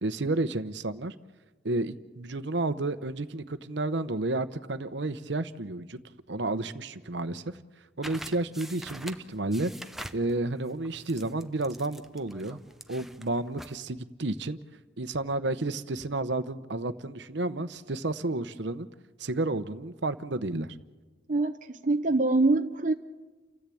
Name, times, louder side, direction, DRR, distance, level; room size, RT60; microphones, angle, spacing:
voice 1, 0.0-1.1 1.6-6.0 6.3-7.4 8.0-9.7 10.1-12.6 12.9-14.6 15.0-18.9 19.2-20.7, right 2 dB, 65° right, 0.9 m, -31 dB
sound 1, 8.0-13.8, right 1 dB, ahead, 0.7 m, -45 dB
voice 2, 21.3-22.9, right 2 dB, 40° right, 0.7 m, -24 dB
29.0 x 14.0 x 8.5 m
head